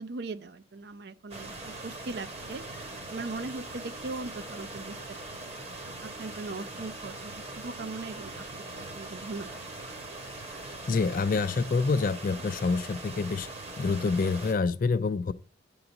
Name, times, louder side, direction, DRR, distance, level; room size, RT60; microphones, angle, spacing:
voice 1, 0.0-2.6 3.1-5.0 5.2-5.3 6.0-9.6, right 3 dB, 55° right, 0.5 m, -39 dB
sound 1, 1.3-14.5, right 2 dB, 35° right, 1.2 m, -41 dB
voice 2, 10.5-13.5 13.8-15.3, left 4 dB, 45° left, 0.3 m, -27 dB
8.7 x 3.9 x 5.9 m
head